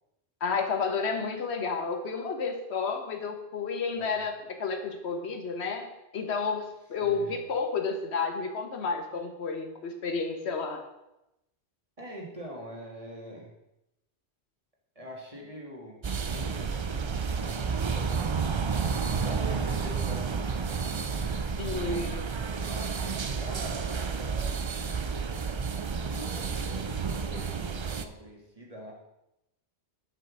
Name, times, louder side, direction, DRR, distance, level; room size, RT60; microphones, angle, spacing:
voice 1, 0.4-10.8 21.6-22.3, left 5 dB, 80° left, 6 dB, 1.3 m, -31 dB
voice 2, 7.0-7.4 12.0-13.5 15.0-18.7 19.2-21.6 22.4-28.9, equal, 35° right, -2 dB, 1.9 m, -45 dB
sound 1, 16.0-28.1, right 5 dB, 50° right, 0.3 m, -31 dB
7.4 x 5.6 x 6.1 m, 0.90 s
omnidirectional pair, 1.1 m